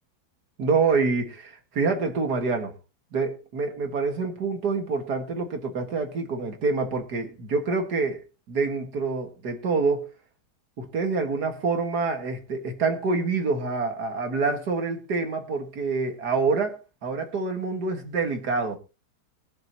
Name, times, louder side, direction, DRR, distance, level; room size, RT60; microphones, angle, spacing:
voice 1, 0.6-2.7 3.1-10.1 10.8-16.8 17.0-18.8, right 4 dB, 80° right, 2.2 m, -26 dB
21.5 x 7.8 x 2.9 m
omnidirectional pair, 1.7 m